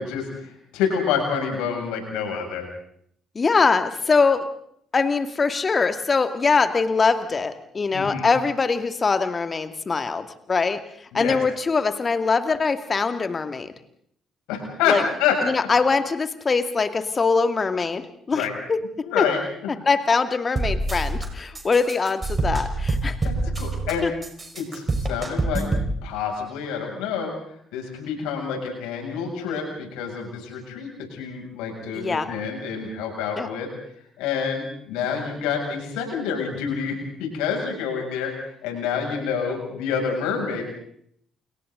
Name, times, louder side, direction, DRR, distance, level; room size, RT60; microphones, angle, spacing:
voice 1, 0.0-2.7 7.9-8.3 11.1-11.4 14.5-15.4 18.3-18.5 19.0-19.7 23.2-24.1 24.5-25.7 26.0-27.3 27.7-33.7 34.2-38.3 38.6-40.6, left 6 dB, 65° left, 1 dB, 7.4 m, -27 dB
voice 2, 3.3-4.5 4.9-10.8 11.1-13.7 14.9-15.0 15.4-18.0 18.3-18.8 19.2-19.3 19.9-23.2 24.0-24.1 31.9-32.3 33.4-33.5, left 4 dB, 35° left, 9 dB, 2.5 m, -22 dB
sound 1, 20.6-21.3 21.5-23.9 24.2-25.9, right 2 dB, 30° right, 5.3 m, -26 dB
30.0 x 28.5 x 4.0 m, 0.67 s
figure-of-eight pair, 45°, 0 cm